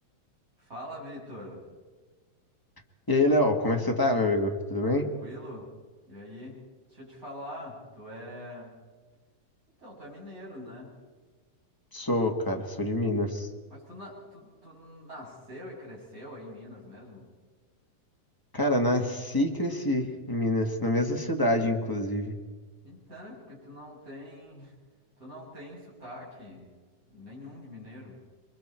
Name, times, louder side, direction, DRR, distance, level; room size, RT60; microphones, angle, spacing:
voice 1, 0.6-1.6 5.0-5.7 6.0-6.6 6.9-8.7 9.8-10.9 13.7-17.3 22.8-24.7 25.2-26.7 27.1-28.2, left 1 dB, 25° right, -4 dB, 7.8 m, -44 dB
voice 2, 3.1-5.1 11.9-13.5 18.5-22.3, left 1 dB, 10° left, 2 dB, 1.1 m, -26 dB
27.5 x 22.5 x 4.5 m, 1.4 s
omnidirectional pair, 3.3 m